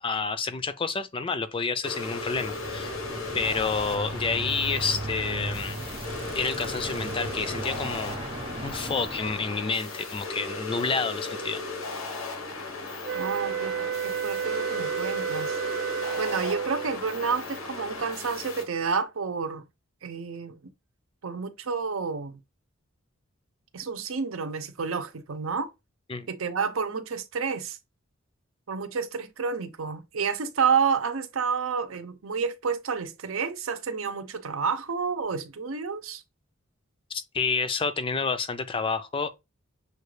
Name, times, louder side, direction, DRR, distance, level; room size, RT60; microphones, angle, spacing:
voice 1, 0.0-2.9 3.3-5.8 6.3-8.2 8.6-11.6 26.1-26.3 37.1-39.3, left 4 dB, 25° left, 0.4 m, -29 dB
sound 1, 1.8-18.6, left 3 dB, 90° left, 1.2 m, -36 dB
Bicycle, 2.1-9.6, right 2 dB, 30° right, 0.7 m, -37 dB
sound 2, 13.0-17.0, right 8 dB, 55° right, 0.3 m, -31 dB
voice 2, 13.1-15.6 16.2-19.7 20.0-20.7 21.2-22.4 23.7-25.7 26.3-27.8 28.7-36.2, right 5 dB, 85° right, 0.7 m, -30 dB
6.5 x 2.4 x 3.2 m
head